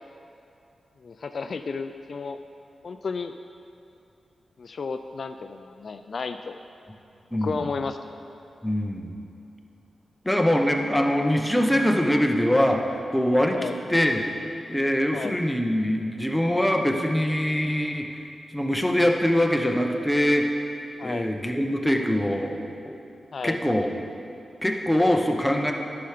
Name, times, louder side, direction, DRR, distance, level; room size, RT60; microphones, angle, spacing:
voice 1, 1.0-2.4 2.8-3.3 4.6-6.6 7.4-8.0 13.5-13.8 15.1-15.4 21.0-21.3 23.3-23.6, left 4 dB, 60° left, 8 dB, 0.3 m, -32 dB
voice 2, 7.3-7.6 8.6-9.1 10.2-12.8 13.1-13.6 13.9-14.2 14.7-18.1 18.5-20.5 21.0-22.9 23.4-23.9 24.6-25.7, equal, 5° left, 2 dB, 0.9 m, -23 dB
10.0 x 5.8 x 5.0 m, 2.8 s
cardioid pair, 70°, 0 cm